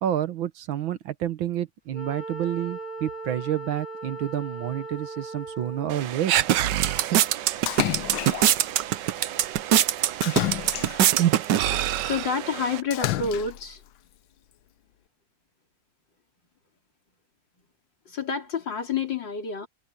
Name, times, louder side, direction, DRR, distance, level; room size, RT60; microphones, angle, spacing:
voice 1, 0.0-6.3, right 11 dB, 85° right, 1.9 m, -29 dB
Wind instrument woodwind instrument, 1.9-6.1, right 3 dB, 25° right, 3.9 m, -38 dB
sound 1, 5.9-12.8, right 11 dB, 70° right, 1.3 m, -24 dB
Splash splatter, 7.7-8.7 10.2-11.3 12.9-13.7, left 13 dB, 85° left, 1.6 m, -29 dB
voice 2, 12.0-13.8 18.1-19.7, left 5 dB, 70° left, 4.2 m, -28 dB
omnidirectional pair, 2.1 m